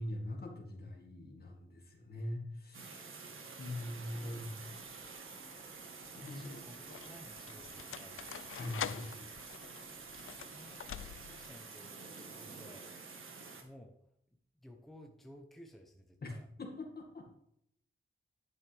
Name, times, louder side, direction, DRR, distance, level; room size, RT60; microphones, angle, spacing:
voice 1, 0.0-3.2 3.6-4.5 6.1-6.6 8.5-9.3 16.2-17.3, left 1 dB, 50° left, 1 dB, 2.1 m, -43 dB
sound 1, 2.7-13.6, right 4 dB, 75° right, 1.5 m, -49 dB
voice 2, 4.2-4.6 6.2-8.2 10.5-12.9 13.6-13.9 14.3-16.5, equal, ahead, 3 dB, 0.8 m, -56 dB
sound 2, 4.7-5.2 6.0-11.5, left 10 dB, 80° left, 0.4 m, -46 dB
11.0 x 8.8 x 3.5 m, 0.75 s
wide cardioid pair, 160°, 21 cm